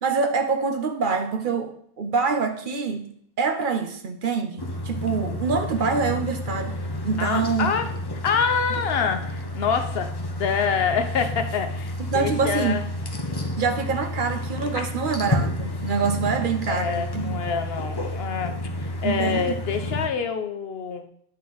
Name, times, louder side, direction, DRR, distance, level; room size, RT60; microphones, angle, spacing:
voice 1, 0.0-3.1 3.4-6.8 7.0-7.7 12.1-12.8 13.6-17.4 19.0-19.5, right 5 dB, 60° right, 7 dB, 0.9 m, -25 dB
sound 1, 4.6-20.1, left 1 dB, 25° left, 0.9 m, -30 dB
voice 2, 7.2-7.9 8.2-10.1 10.4-12.8 16.7-21.1, left 6 dB, 75° left, 7 dB, 1.0 m, -26 dB
10.0 x 4.3 x 3.9 m, 0.66 s
omnidirectional pair, 1.0 m